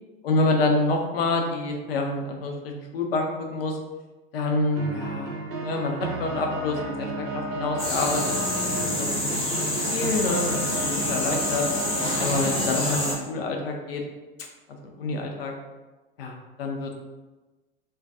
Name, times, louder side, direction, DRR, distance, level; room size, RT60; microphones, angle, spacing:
voice 1, 0.2-3.8 4.3-8.3 8.6-11.6 12.2-14.0 14.8-15.5 16.2-16.9, left 2 dB, 75° left, 3 dB, 0.5 m, -27 dB
sound 1, 4.8-12.8, right 1 dB, 65° right, 0.6 m, -32 dB
sound 2, 7.8-13.1, left 1 dB, 20° left, 0.7 m, -27 dB
2.2 x 2.2 x 2.5 m, 1.1 s
figure-of-eight pair, 75°, 30 cm